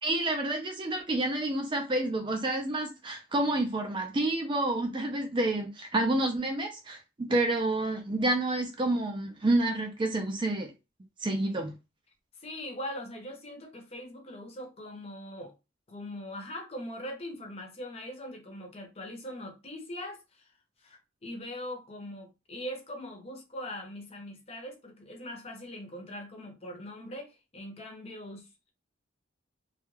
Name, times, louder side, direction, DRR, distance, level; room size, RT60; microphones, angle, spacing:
voice 1, 0.0-10.7 11.2-11.7, right 2 dB, 25° right, 0.4 m, -29 dB
voice 2, 12.4-15.5 15.9-20.5 20.8-28.7, left 1 dB, 30° left, 0.6 m, -41 dB
2.3 x 2.1 x 3.1 m
head